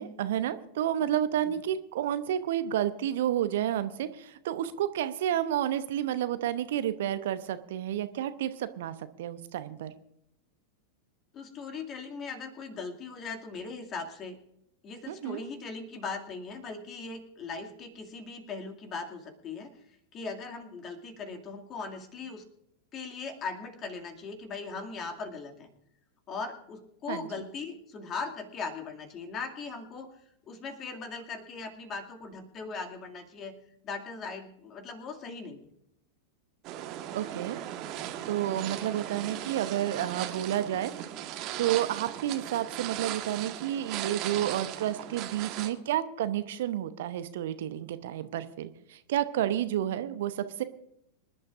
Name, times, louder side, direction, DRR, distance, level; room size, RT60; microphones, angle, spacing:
voice 1, 0.0-9.9 15.1-15.4 27.1-27.3 37.1-37.6 38.2-40.9 41.6-50.6, right 11 dB, 55° right, 11 dB, 0.9 m, -30 dB
voice 2, 11.3-14.4 14.8-19.7 20.1-22.4 22.9-25.7 26.3-30.1 30.4-33.5 33.8-35.7, left 4 dB, 30° left, 4 dB, 2.4 m, -39 dB
sound 1, 36.6-45.7, right 12 dB, 40° right, 1.4 m, -38 dB
26.0 x 11.5 x 2.6 m, 0.78 s
figure-of-eight pair, 90°, 0 cm